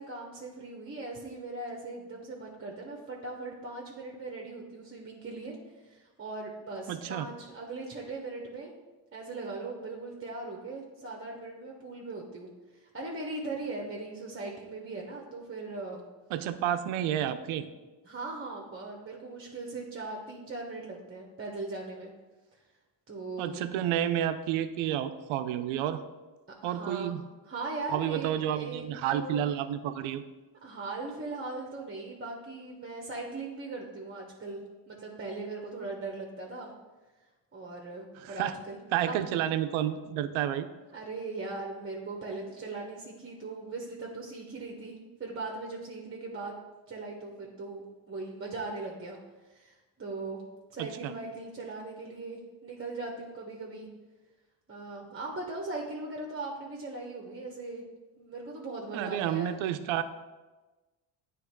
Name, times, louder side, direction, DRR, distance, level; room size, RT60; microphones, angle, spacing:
voice 1, 0.0-5.6 5.8-8.7 9.1-16.0 18.0-22.1 23.1-23.6 26.6-27.2 27.5-29.4 30.6-36.7 37.5-38.8 39.1-39.2 40.9-46.6 46.9-49.2 49.5-50.4 50.7-53.9 54.7-57.8 58.2-59.6, right 3 dB, 25° right, -1 dB, 1.1 m, -39 dB
voice 2, 6.9-7.3 16.3-17.6 23.4-26.0 26.6-27.2 27.9-30.2 38.2-38.5 38.9-40.7 50.8-51.1 58.9-60.0, right 11 dB, 75° right, 11 dB, 0.7 m, -30 dB
8.8 x 3.3 x 4.6 m, 1.2 s
supercardioid pair, 80°, 49 cm